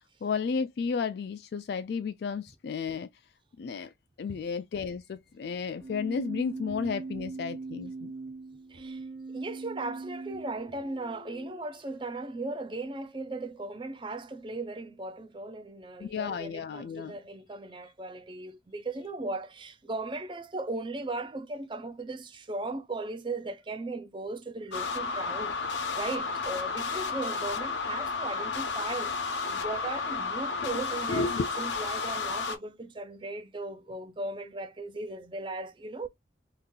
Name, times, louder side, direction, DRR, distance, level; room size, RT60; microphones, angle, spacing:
voice 1, 0.2-3.1 3.6-3.9 4.2-8.1 16.0-17.2 30.6-30.8 31.1-31.5, left 5 dB, 60° left, 0.3 m, -32 dB
Keyboard (musical), 5.8-11.7, right 3 dB, 65° right, 0.7 m, -40 dB
voice 2, 8.7-36.1, right 2 dB, 25° right, 0.5 m, -37 dB
sound 1, 24.7-32.6, left 4 dB, 90° left, 0.8 m, -32 dB
2.9 x 2.5 x 3.7 m
head